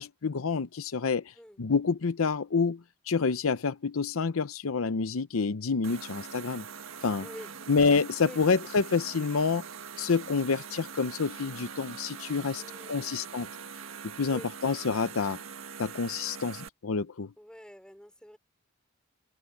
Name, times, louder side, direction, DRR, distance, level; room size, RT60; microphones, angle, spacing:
voice 1, 0.0-1.2 1.6-2.8 3.1-6.6 7.0-7.3 7.7-9.6 10.0-13.5 14.2-15.4 15.8-17.3, left 5 dB, 85° left, 0.7 m, -28 dB
sound 1, 5.8-16.7, right 6 dB, 75° right, 1.7 m, -43 dB
voice 2, 7.2-7.6 12.5-13.1 14.2-14.5 17.4-18.4, equal, 5° left, 4.9 m, -48 dB
head